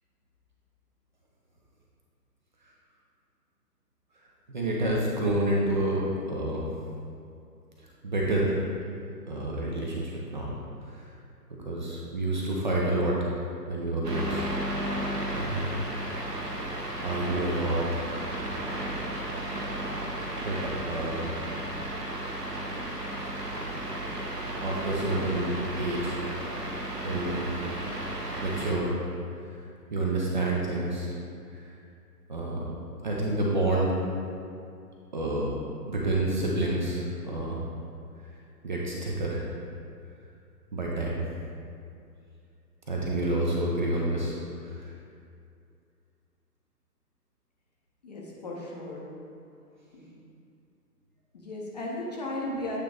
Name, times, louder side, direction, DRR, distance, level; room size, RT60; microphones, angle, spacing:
voice 1, 4.5-6.0 6.3-6.6 7.8-8.6 9.3-10.5 10.9-11.0 11.5-13.2 13.7-14.8 15.3-15.9 17.0-17.8 20.4-21.3 24.6-26.2 27.0-27.5 28.4-29.0 29.9-31.1 31.5-31.7 32.3-32.6 33.0-34.0 35.1-35.5 35.9-37.6 38.6-39.4 40.7-41.3 42.9-44.4 44.6-44.8, right 1 dB, 30° right, -4 dB, 0.6 m, -28 dB
sound 1, 14.0-28.7, right 1 dB, 75° right, 1.4 m, -34 dB
voice 2, 48.0-49.0 49.9-50.1 51.3-52.8, left 1 dB, 25° left, -3 dB, 0.7 m, -36 dB
8.4 x 3.1 x 5.0 m, 2.5 s
figure-of-eight pair, 130°, 49 cm